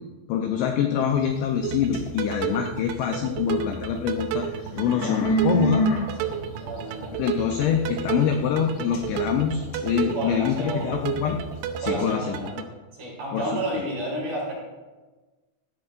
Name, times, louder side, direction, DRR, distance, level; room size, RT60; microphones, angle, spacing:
voice 1, 0.3-4.5 4.8-5.9 7.2-11.4 11.8-12.6 13.3-13.8, left 8 dB, 80° left, 3 dB, 2.6 m, -25 dB
sound 1, 1.1-3.1 3.5-11.8, right 1 dB, 60° left, 4.2 m, -30 dB
sound 2, 1.6-12.6, right 9 dB, 80° right, 3.1 m, -32 dB
voice 2, 6.2-7.1 10.1-11.0 11.8-12.5 13.0-14.5, right 1 dB, 45° right, -5 dB, 6.0 m, -31 dB
17.5 x 12.5 x 2.5 m, 1.2 s
omnidirectional pair, 5.9 m